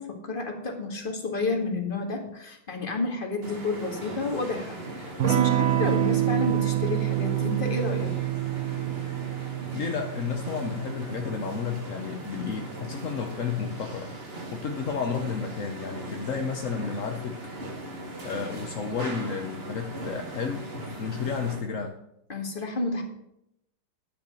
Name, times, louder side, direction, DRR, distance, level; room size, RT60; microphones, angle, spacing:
voice 1, 0.0-8.1 22.3-23.0, left 3 dB, 25° left, 2 dB, 1.8 m, -30 dB
sound 1, 3.4-21.7, right 1 dB, 30° right, 1.7 m, -39 dB
Electric guitar / Strum, 5.2-13.5, right 14 dB, 80° right, 0.8 m, -28 dB
voice 2, 9.7-14.1 14.5-17.4 18.2-20.6 21.0-22.0, left 6 dB, 55° left, 4 dB, 0.9 m, -32 dB
10.5 x 6.9 x 7.1 m, 0.80 s
omnidirectional pair, 2.4 m